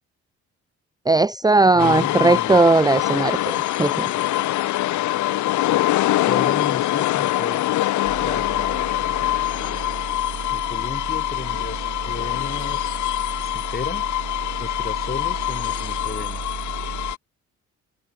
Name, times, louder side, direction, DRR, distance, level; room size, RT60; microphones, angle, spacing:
voice 1, 1.1-3.4 3.8-4.1, right 3 dB, 15° right, 1.0 m, -17 dB
voice 2, 1.7-2.6 6.3-7.7 8.2-8.8 10.5-12.9 13.4-14.1 14.6-16.6, left 4 dB, 30° left, 6.0 m, -33 dB
sound 1, 1.8-17.2, left 15 dB, 75° left, 0.8 m, -24 dB
sound 2, 8.0-17.1, right 7 dB, 45° right, 2.1 m, -35 dB
cardioid pair, 90°, 30 cm